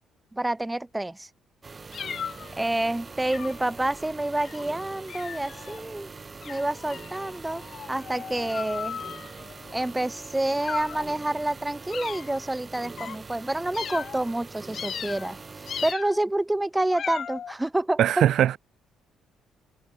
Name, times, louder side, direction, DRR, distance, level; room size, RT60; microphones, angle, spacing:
voice 1, 0.3-1.3 2.6-6.1 6.5-7.6 7.9-9.0 9.7-15.4 15.8-18.0, right 1 dB, 15° right, 0.5 m, -28 dB
sound 1, 1.6-15.9, right 4 dB, 30° right, 1.7 m, -43 dB
sound 2, 1.9-2.6 3.3-3.7 4.3-4.7 5.1-5.8 6.4-9.9 10.6-11.1 11.9-12.4 13.0-13.2 13.7-14.3 14.7-15.4 15.7-16.2 16.9-17.5, left 8 dB, 50° left, 4.2 m, -37 dB
voice 2, 18.0-18.6, right 11 dB, 60° right, 0.5 m, -20 dB
figure-of-eight pair, 45°, 0 cm